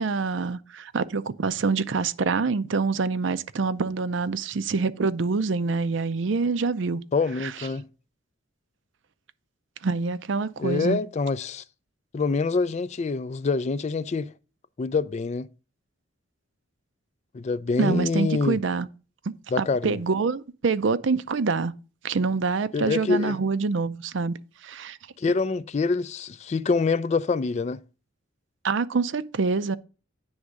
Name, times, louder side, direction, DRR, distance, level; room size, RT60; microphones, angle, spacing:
voice 1, 0.0-7.0 7.4-7.5 9.8-11.0 17.8-18.9 19.3-21.7 22.0-24.3 24.6-25.0 28.6-29.8, right 4 dB, 65° right, 0.5 m, -26 dB
voice 2, 7.1-7.9 10.6-11.6 12.1-14.3 14.8-15.5 17.3-18.6 19.5-20.0 22.7-23.4 25.2-27.8, left 4 dB, 35° left, 0.3 m, -25 dB
9.6 x 3.6 x 6.3 m
head